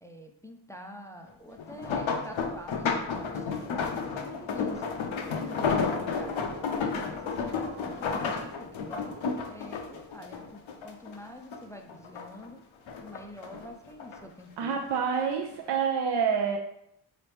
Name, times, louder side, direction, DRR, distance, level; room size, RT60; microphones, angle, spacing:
voice 1, 0.0-3.9 4.2-5.0 5.3-12.6 13.0-14.8, left 1 dB, 5° left, 4 dB, 0.4 m, -47 dB
sound 1, 1.6-11.2 11.5-12.5 12.9-14.2 14.9-15.2 15.7-15.8, left 5 dB, 80° left, 0.6 m, -32 dB
voice 2, 14.6-16.6, right 6 dB, 65° right, 2 dB, 0.5 m, -27 dB
4.0 x 3.2 x 3.2 m, 0.78 s
cardioid pair, 40°, 46 cm